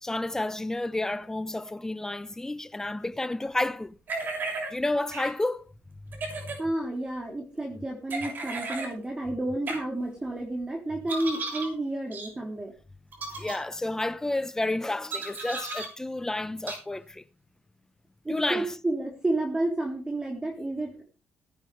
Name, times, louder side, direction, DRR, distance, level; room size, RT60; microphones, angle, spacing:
voice 1, 0.0-4.0 4.7-5.6 6.0-6.6 13.4-17.2 18.3-18.8, left 2 dB, 10° left, 1.0 m, -31 dB
sound 1, 4.1-4.7 5.1-5.3 6.1-6.6 8.1-8.9 9.7-9.8 11.1-11.7 12.1-12.3 13.1-13.6 15.1-15.9 16.7-16.8, right 3 dB, 50° right, 6.7 m, -34 dB
voice 2, 6.6-12.7 18.3-21.0, right 2 dB, 20° right, 3.5 m, -31 dB
19.0 x 9.5 x 3.4 m
cardioid pair, 90°, 4 cm